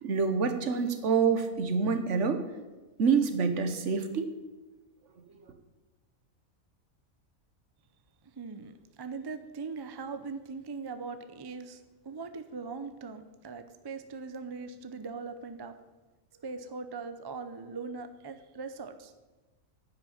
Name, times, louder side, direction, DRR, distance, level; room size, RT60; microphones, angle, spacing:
voice 1, 0.0-2.4 3.0-4.3, right 5 dB, 60° right, 8 dB, 1.3 m, -27 dB
voice 2, 8.4-15.8 16.3-19.1, right 4 dB, 35° right, 9 dB, 0.3 m, -40 dB
10.0 x 6.0 x 8.6 m, 1.2 s
omnidirectional pair, 1.5 m